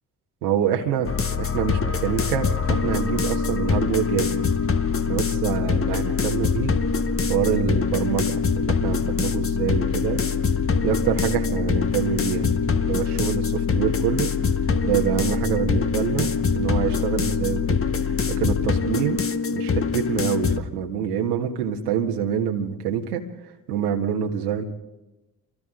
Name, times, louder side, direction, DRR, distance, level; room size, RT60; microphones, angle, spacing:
voice 1, 0.4-1.1 1.4-4.3 5.1-6.7 7.3-10.2 10.8-14.3 14.8-16.3 16.5-19.2 19.5-24.6, right 8 dB, 85° right, 1 dB, 1.7 m, -26 dB
sound 1, 1.0-20.6, left 5 dB, 30° left, 1.4 m, -24 dB
29.5 x 24.5 x 3.8 m, 1.0 s
hypercardioid pair, 45°, 44 cm